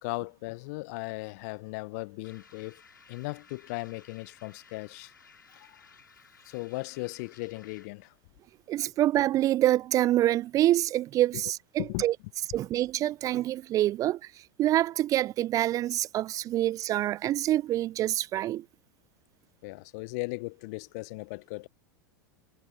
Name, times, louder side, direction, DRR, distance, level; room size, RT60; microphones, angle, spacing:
voice 1, 0.0-2.8 3.1-5.1 5.5-5.8 6.4-8.1 11.8-12.1 19.6-21.7, left 26 dB, 50° left, 0.9 m, -37 dB
sound 1, 2.2-8.0, left 6 dB, 80° left, 5.1 m, -57 dB
voice 2, 8.7-12.1 12.5-14.2 14.6-18.6, right 14 dB, 30° right, 0.5 m, -26 dB
figure-of-eight pair, 85°, 11 cm